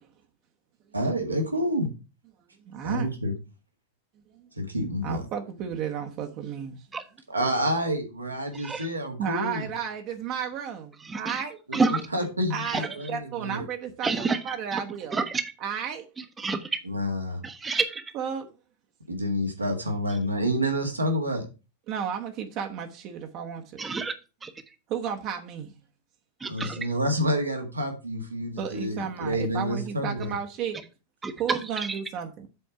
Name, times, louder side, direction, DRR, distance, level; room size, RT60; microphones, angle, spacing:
voice 1, 0.9-1.9 2.8-3.3 4.6-5.2 7.3-9.7 11.7-13.6 16.8-17.4 19.1-21.4 26.5-30.3, equal, 80° right, 1.8 m, -28 dB
voice 2, 2.6-3.1 4.3-4.5 5.0-6.9 9.2-11.6 12.5-15.2 15.6-16.1 18.1-18.5 21.9-23.8 24.9-25.7 28.6-30.8 31.4-32.5, right 8 dB, 40° right, 1.0 m, -33 dB
voice 3, 8.5-8.9 11.1-11.4 11.7-12.0 12.6-12.8 14.0-14.8 15.1-15.4 16.4-16.8 17.4-18.0 23.8-24.1 24.4-24.5 26.4-26.8 31.2-31.6 31.9-32.0, right 4 dB, 15° right, 0.9 m, -28 dB
7.8 x 4.5 x 5.7 m
figure-of-eight pair, 90°, 0 cm